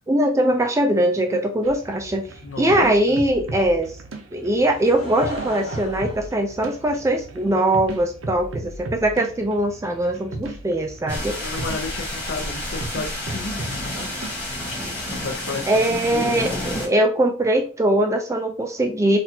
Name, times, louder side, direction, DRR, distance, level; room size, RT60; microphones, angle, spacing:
voice 1, 0.1-2.3 2.6-3.9 4.3-11.3 15.7-19.2, right 1 dB, 15° right, 4 dB, 0.3 m, -21 dB
sound 1, 1.6-15.4, right 2 dB, 70° right, 0.6 m, -37 dB
voice 2, 2.4-3.2 11.4-14.1 15.1-16.5, left 3 dB, 60° left, 3 dB, 0.6 m, -33 dB
Laughter / Crowd, 4.6-7.2 7.9-8.0, equal, 80° left, 1.7 m, -35 dB
sound 2, 11.1-16.9, left 1 dB, 5° left, 1.3 m, -30 dB
4.0 x 2.4 x 2.8 m, 0.38 s
head